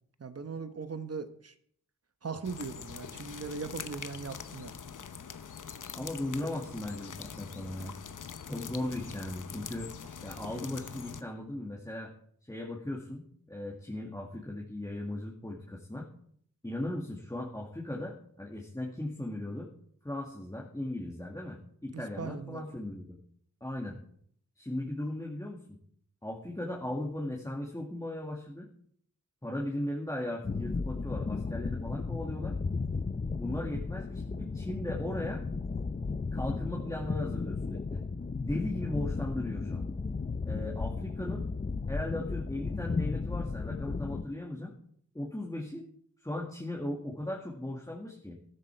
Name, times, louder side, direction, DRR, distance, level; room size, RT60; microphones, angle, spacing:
voice 1, 0.2-1.5 2.2-4.7 21.9-22.6, right 5 dB, 50° right, 10 dB, 1.2 m, -39 dB
sound 1, 2.4-11.2, left 7 dB, 75° left, 0.9 m, -44 dB
voice 2, 5.9-8.0 8.5-9.9 10.2-12.1 12.5-16.1 16.6-19.7 20.0-23.2 23.6-24.0 24.6-25.8 26.2-28.7 29.4-32.6 33.4-35.4 36.3-38.0 38.4-39.9 40.5-41.5 41.9-44.7 45.1-45.9 46.2-48.4, left 1 dB, 10° left, -2 dB, 2.0 m, -37 dB
sound 2, 30.4-44.2, left 4 dB, 30° left, 0.6 m, -34 dB
13.5 x 12.5 x 4.6 m, 0.65 s
wide cardioid pair, 85°, 31 cm